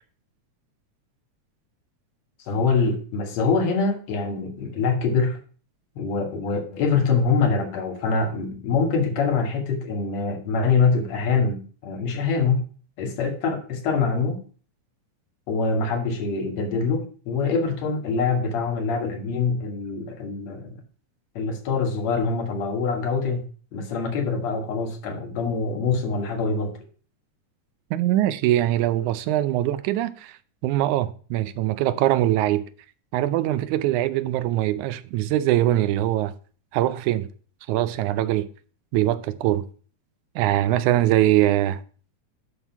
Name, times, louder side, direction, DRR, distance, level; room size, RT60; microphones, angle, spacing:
voice 1, 2.5-5.4 6.0-12.6 13.0-14.4 15.5-20.7 21.4-23.5 23.7-26.7, left 4 dB, 65° left, 2.6 m, -24 dB
voice 2, 27.9-30.4 30.6-32.7 33.1-36.3 36.7-37.3 37.7-38.5 38.9-39.7 40.4-41.8, right 14 dB, 85° right, 2.0 m, -22 dB
11.0 x 3.8 x 5.7 m
omnidirectional pair, 3.4 m